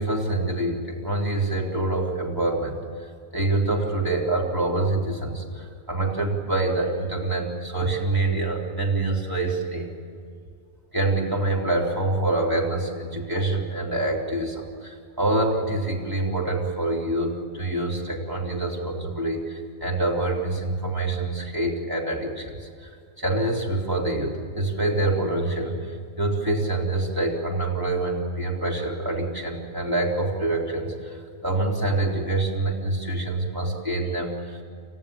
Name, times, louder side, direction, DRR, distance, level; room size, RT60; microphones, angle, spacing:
voice 1, 0.0-9.9 10.9-34.6, right 2 dB, 15° right, -3 dB, 3.9 m, -26 dB
29.5 x 14.5 x 8.8 m, 2.2 s
omnidirectional pair, 1.2 m